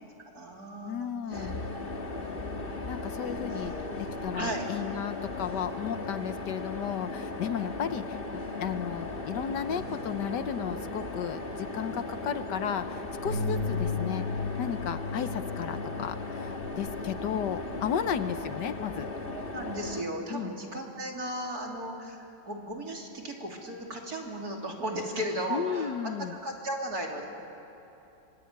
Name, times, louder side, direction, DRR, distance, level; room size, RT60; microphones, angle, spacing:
voice 1, 0.3-1.5 1.9-2.6 3.3-4.0 4.3-4.6 19.3-25.9 26.3-27.2, right 1 dB, 55° right, 0 dB, 3.7 m, -36 dB
voice 2, 0.9-1.6 2.9-3.7 4.2-8.2 8.6-14.3 14.6-19.1 20.3-20.6 25.5-26.4, left 8 dB, 70° left, 11 dB, 1.5 m, -34 dB
sound 1, 1.3-20.0, left 3 dB, 30° left, 1.6 m, -37 dB
sound 2, 13.3-19.5, left 4 dB, 80° right, 6.8 m, -36 dB
25.5 x 23.5 x 9.5 m, 2.9 s
omnidirectional pair, 2.0 m